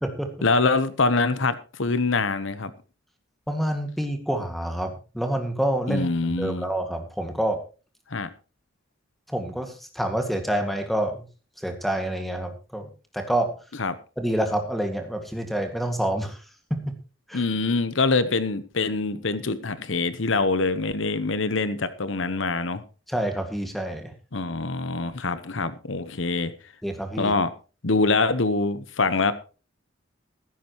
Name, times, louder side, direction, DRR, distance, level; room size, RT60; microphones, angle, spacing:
voice 1, 0.4-2.7 5.9-6.7 8.1-8.3 13.8-13.9 17.3-22.8 24.3-26.5 27.2-27.5 27.8-29.3, left 3 dB, 70° left, 1.0 m, -24 dB
voice 2, 3.5-7.6 9.3-11.2 11.6-12.9 13.1-13.5 14.2-16.4 16.7-16.9 17.3-17.4 23.1-24.1 26.8-27.3, right 1 dB, ahead, 2.0 m, -27 dB
15.5 x 13.5 x 3.1 m
head